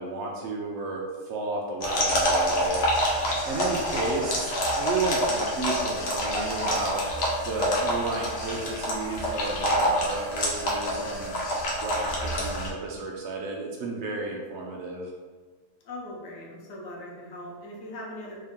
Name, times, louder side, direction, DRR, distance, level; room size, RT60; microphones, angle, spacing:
voice 1, 0.0-7.0 7.4-11.3 11.8-15.1, right 3 dB, 75° right, -2 dB, 0.6 m, -33 dB
sound 1, 1.8-12.7, equal, 55° left, 0.9 m, -27 dB
voice 2, 15.8-18.4, left 1 dB, 85° left, -2 dB, 1.4 m, -40 dB
3.3 x 2.7 x 3.5 m, 1.4 s
omnidirectional pair, 1.8 m